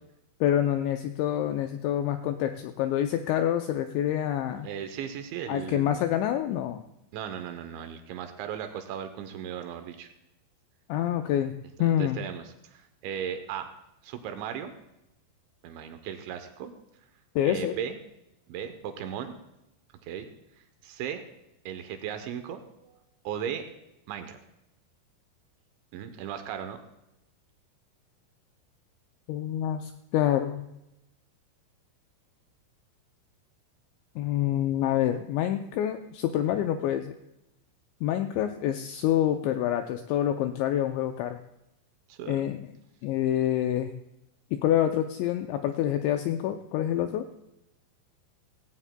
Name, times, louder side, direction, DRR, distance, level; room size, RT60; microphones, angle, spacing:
voice 1, 0.4-4.7 5.5-6.8 10.9-11.5 11.8-12.2 17.4-17.7 29.3-30.6 34.2-37.1 38.0-41.4 42.3-42.6 43.0-43.9 44.5-47.3, left 11 dB, 85° left, 7 dB, 2.6 m, -27 dB
voice 2, 4.6-6.1 7.1-10.1 11.8-13.7 14.0-14.7 15.6-16.7 17.4-18.0 18.5-19.4 20.0-20.3 20.8-21.2 21.7-23.0 23.2-23.6 24.1-24.4 25.9-26.8 42.1-42.6, right 9 dB, 80° right, 8 dB, 2.9 m, -36 dB
17.0 x 17.0 x 2.2 m, 0.88 s
omnidirectional pair, 5.7 m